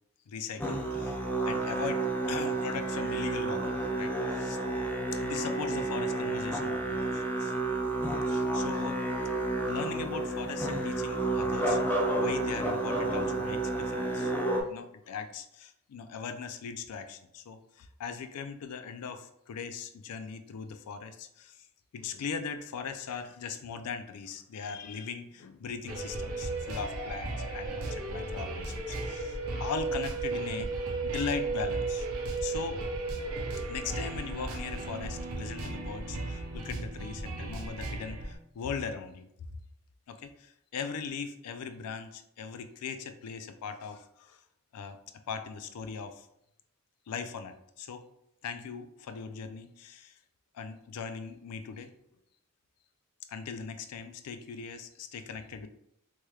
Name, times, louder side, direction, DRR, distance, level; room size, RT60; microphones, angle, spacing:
voice 1, 0.3-1.2 1.4-4.6 5.1-7.5 8.3-9.0 9.7-14.3 14.7-21.7 21.9-30.7 31.0-32.1 32.4-32.8 33.7-39.3 40.1-44.4 44.7-45.0 45.3-46.3 47.1-48.1 48.4-50.2 50.5-51.9 53.3-55.7, left 6 dB, 90° left, 9 dB, 0.4 m, -39 dB
Musical instrument, 0.6-14.6, right 2 dB, 10° left, 0.3 m, -30 dB
sound 1, 25.8-38.3, right 3 dB, 70° right, 0.7 m, -35 dB
3.2 x 3.0 x 2.3 m, 0.77 s
head